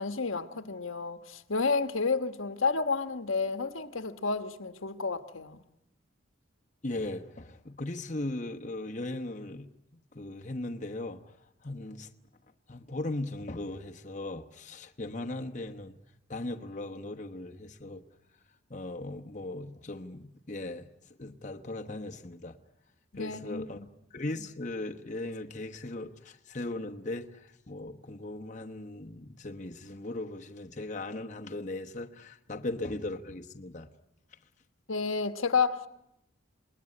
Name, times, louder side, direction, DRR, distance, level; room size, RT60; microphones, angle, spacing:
voice 1, 0.0-5.6 23.1-23.8 34.9-35.9, left 4 dB, 75° left, 1.4 m, -31 dB
voice 2, 6.8-9.7 10.1-11.4 11.6-12.1 12.7-16.0 16.3-18.0 18.7-20.9 21.2-22.6 23.1-23.8 24.1-33.9, left 2 dB, 35° left, 1.1 m, -38 dB
27.5 x 20.5 x 9.8 m
head